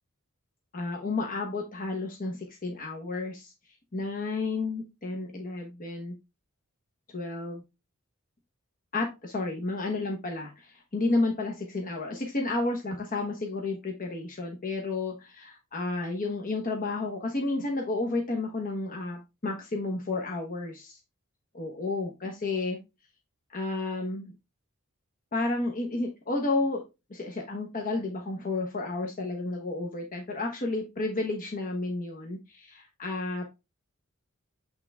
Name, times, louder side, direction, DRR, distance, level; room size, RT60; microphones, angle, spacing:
voice 1, 0.7-3.5 3.9-6.1 7.1-7.6 8.9-21.0 21.5-22.8 23.5-24.3 25.3-26.8 27.1-33.4, left 2 dB, 40° left, 1 dB, 1.2 m, -31 dB
8.7 x 3.6 x 3.5 m, 0.24 s
head